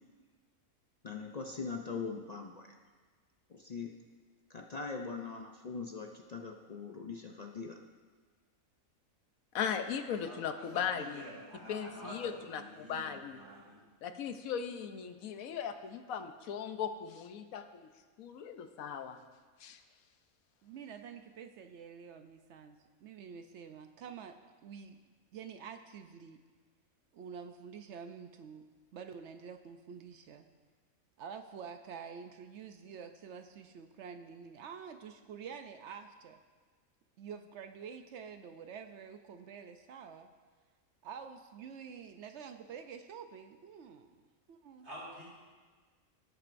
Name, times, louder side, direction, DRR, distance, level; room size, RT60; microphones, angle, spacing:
voice 1, 1.0-2.7 3.5-3.9 4.5-7.8, left 4 dB, 60° left, 2 dB, 0.4 m, -41 dB
voice 2, 9.5-11.3 11.7-13.4 14.0-17.9 18.2-19.2 19.6-19.8, left 7 dB, 75° left, 8 dB, 1.1 m, -38 dB
voice 3, 10.2-10.9 11.1-13.8 44.8-45.3, equal, 50° right, -7 dB, 3.6 m, -48 dB
voice 4, 13.4-13.9 20.6-25.0 25.3-26.4 27.1-28.6 28.9-30.5 31.2-36.4 37.2-40.3 41.0-44.2 44.5-44.9, right 6 dB, 65° right, 8 dB, 0.8 m, -48 dB
18.5 x 7.6 x 2.6 m, 1.4 s
omnidirectional pair, 1.5 m